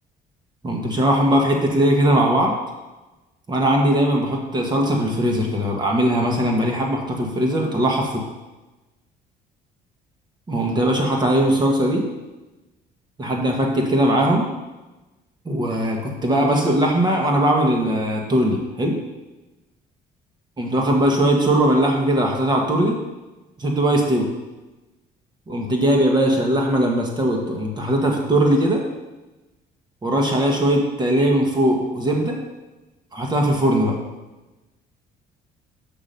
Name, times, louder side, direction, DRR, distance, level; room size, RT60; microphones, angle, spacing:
voice 1, 0.6-2.5 3.5-8.2 10.5-12.0 13.2-14.5 15.4-19.0 20.6-23.0 23.6-24.3 25.5-28.8 30.0-32.4 33.1-33.9, right 1 dB, 25° right, 1 dB, 1.6 m, -20 dB
6.1 x 6.0 x 5.4 m, 1.1 s
cardioid pair, 110°, 17 cm